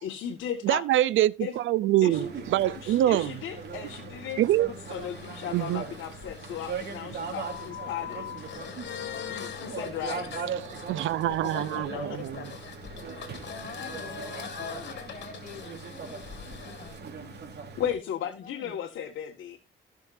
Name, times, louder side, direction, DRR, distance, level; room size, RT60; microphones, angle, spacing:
voice 1, 0.0-0.8 1.4-1.5 2.0-2.3 2.6-8.5 9.3-10.5 11.3-12.2 17.8-19.6, left 9 dB, 80° left, 1.7 m, -36 dB
voice 2, 0.6-2.2 2.5-3.3 4.4-4.7 5.5-5.8 10.7-12.4, right 13 dB, 80° right, 0.6 m, -25 dB
sound 1, 2.1-17.9, right 5 dB, 55° right, 3.1 m, -40 dB
sound 2, 3.3-17.0, left 8 dB, 60° left, 2.9 m, -42 dB
voice 3, 13.5-16.9 18.2-18.8, left 4 dB, 40° left, 5.3 m, -45 dB
16.5 x 6.4 x 2.6 m
cardioid pair, 90°, 20 cm